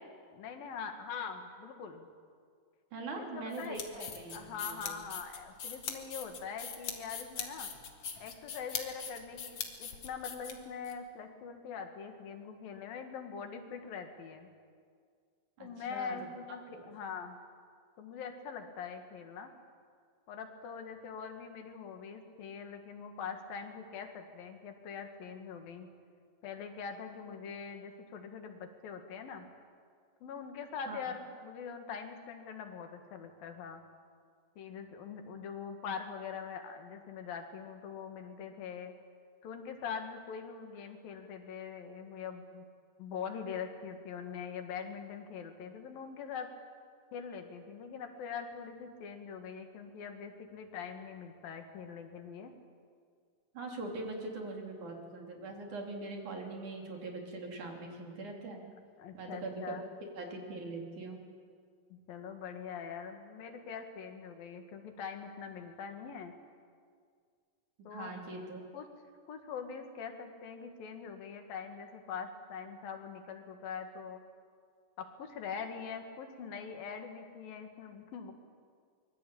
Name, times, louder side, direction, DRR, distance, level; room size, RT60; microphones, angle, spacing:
voice 1, 0.3-2.1 3.2-3.8 4.3-7.7 8.2-14.5 15.6-17.4 18.0-19.5 20.3-25.9 26.4-29.5 30.2-33.8 34.6-38.9 39.4-42.7 43.0-46.5 47.1-52.5 59.0-59.8 61.9-66.3 67.9-68.1 68.7-68.9 69.3-74.2 75.0-78.3, left 6 dB, 80° left, 6 dB, 3.7 m, -43 dB
voice 2, 2.9-4.9 15.6-16.2 16.7-16.8 30.9-31.0 53.5-58.6 59.1-59.8 60.1-61.2 67.9-68.6, right 2 dB, 60° right, 1 dB, 4.6 m, -42 dB
sound 1, 3.5-10.9, left 6 dB, 50° left, 2.6 m, -41 dB
24.5 x 22.5 x 8.6 m, 2.1 s
omnidirectional pair, 4.1 m